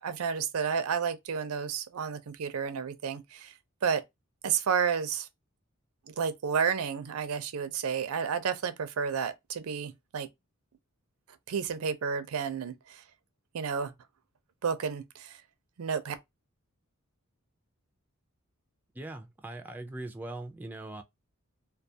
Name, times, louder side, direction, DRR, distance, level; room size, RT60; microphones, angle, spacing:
voice 1, 0.0-3.5 3.8-4.0 4.4-5.3 6.1-10.3 11.5-13.0 13.5-13.9 14.6-15.4 15.8-16.2, right 6 dB, 85° right, 0.5 m, -31 dB
voice 2, 18.9-21.0, right 2 dB, 10° right, 0.3 m, -40 dB
2.3 x 2.3 x 2.7 m
head